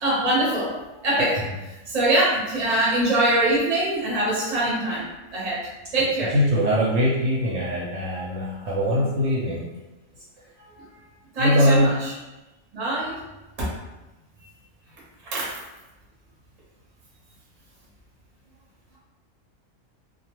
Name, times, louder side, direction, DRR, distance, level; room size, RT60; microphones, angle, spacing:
voice 1, 0.0-5.1 5.3-6.3 10.6-10.9 11.3-12.1 12.7-13.2 13.6-13.7 15.3-15.5, right 1 dB, 35° right, -6 dB, 0.6 m, -23 dB
voice 2, 6.0-9.6 11.4-11.9, equal, 70° right, -5 dB, 0.9 m, -22 dB
2.3 x 2.2 x 2.9 m, 1.1 s
omnidirectional pair, 1.5 m